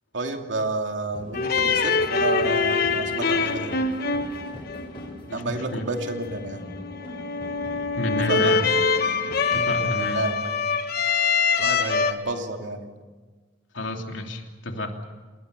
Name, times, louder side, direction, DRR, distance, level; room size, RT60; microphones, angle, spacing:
voice 1, 0.1-3.8 5.3-6.6 8.3-8.5 9.8-10.6 11.6-12.9, right 2 dB, 80° right, 3 dB, 2.6 m, -30 dB
sound 1, 1.1-9.7, left 1 dB, 30° left, 7.8 m, -41 dB
sound 2, 1.3-12.1, left 5 dB, 55° left, 1.4 m, -24 dB
voice 2, 5.3-5.9 8.0-8.6 9.5-10.2 13.7-15.1, left 1 dB, 85° left, 3 dB, 3.0 m, -30 dB
28.0 x 20.5 x 6.8 m, 1.4 s
head